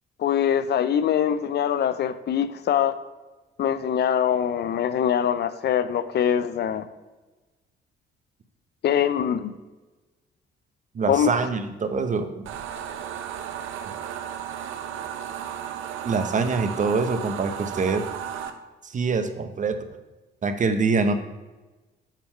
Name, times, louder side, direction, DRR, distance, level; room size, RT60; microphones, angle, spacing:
voice 1, 0.2-2.9 3.6-6.9 8.8-9.5 11.1-11.3, left 9 dB, 55° left, 13 dB, 0.5 m, -23 dB
voice 2, 10.9-12.3 16.0-18.1 18.9-19.8 20.4-21.1, right 4 dB, 40° right, 8 dB, 0.7 m, -24 dB
sound 1, 12.5-18.5, right 9 dB, 85° right, 0.6 m, -34 dB
7.3 x 3.6 x 5.5 m, 1.2 s
cardioid pair, 90°, 20 cm